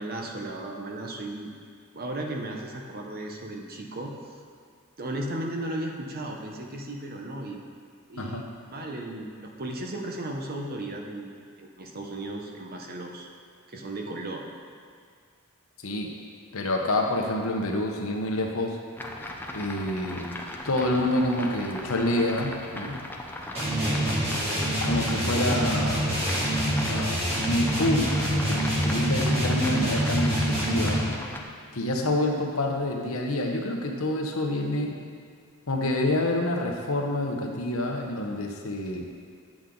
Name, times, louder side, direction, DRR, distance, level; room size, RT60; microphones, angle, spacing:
voice 1, 0.0-1.5 1.9-4.3 5.0-7.6 8.1-11.3 11.6-13.3 13.7-14.4 23.4-24.2, right 1 dB, 45° right, 1 dB, 1.0 m, -35 dB
voice 2, 15.8-16.1 16.5-18.8 19.5-20.3 20.6-23.0 24.8-26.1 26.7-31.0 31.7-35.0 35.7-39.1, left 1 dB, 70° left, 1 dB, 1.0 m, -27 dB
sound 1, 19.0-31.4, left 1 dB, 10° left, 0.6 m, -37 dB
sound 2, 23.6-31.2, right 1 dB, 25° right, 1.8 m, -26 dB
10.0 x 7.3 x 3.9 m, 2.1 s
head